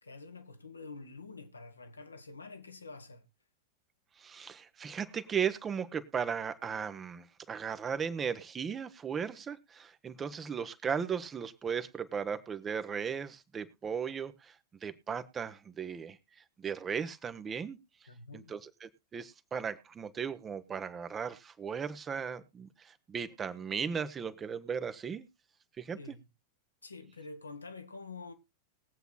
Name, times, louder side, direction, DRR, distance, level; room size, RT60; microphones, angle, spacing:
voice 1, 0.0-3.3 18.1-18.5 26.0-26.2 26.8-28.3, left 3 dB, 80° left, 1.2 m, -47 dB
voice 2, 4.2-14.5 14.8-16.2 16.6-17.8 18.3-25.3 25.8-26.0, right 7 dB, 20° right, 0.9 m, -36 dB
20.5 x 8.1 x 2.2 m
figure-of-eight pair, 90°, 0 cm